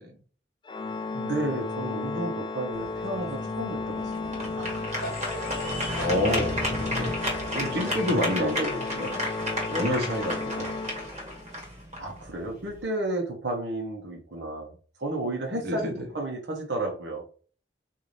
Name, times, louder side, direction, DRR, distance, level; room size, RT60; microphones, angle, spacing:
Organ, 0.6-11.5, left 3 dB, 25° left, 0.3 m, -34 dB
voice 1, 1.1-4.7 8.4-8.5 10.6-10.7 12.0-14.7 15.0-17.3, right 2 dB, 90° right, 1 dB, 0.9 m, -32 dB
sound 1, 2.7-12.8, equal, 40° right, 1.4 m, -34 dB
sound 2, 4.6-9.5, left 1 dB, 55° left, 1.0 m, -37 dB
voice 2, 6.0-7.2 7.5-9.2 9.7-10.8 15.6-16.1, left 1 dB, 65° right, 1 dB, 1.0 m, -28 dB
3.9 x 2.7 x 3.2 m, 0.40 s
head